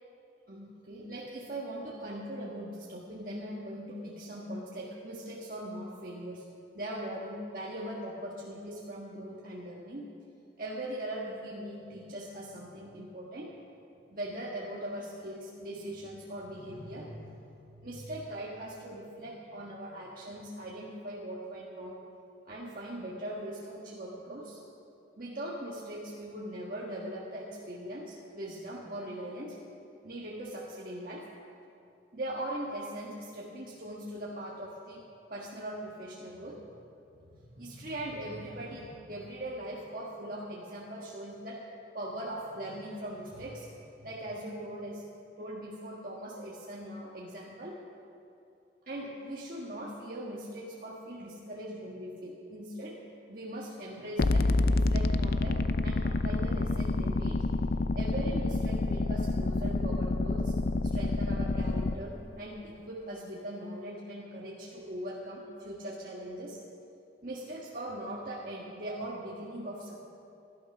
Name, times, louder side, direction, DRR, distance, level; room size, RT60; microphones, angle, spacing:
voice 1, 0.5-6.4 6.7-10.1 10.6-13.5 14.1-17.4 17.8-22.0 22.4-24.6 25.2-29.5 30.0-31.3 32.1-35.0 35.3-36.7 37.2-41.6 41.9-45.0 45.4-47.8 48.9-53.0 53.3-57.4 57.9-60.5 60.8-66.6 67.2-70.0, right 1 dB, 50° right, -5 dB, 1.6 m, -40 dB
sound 1, 54.2-61.9, left 2 dB, 55° left, 0.5 m, -28 dB
15.5 x 11.5 x 6.0 m, 2.6 s
head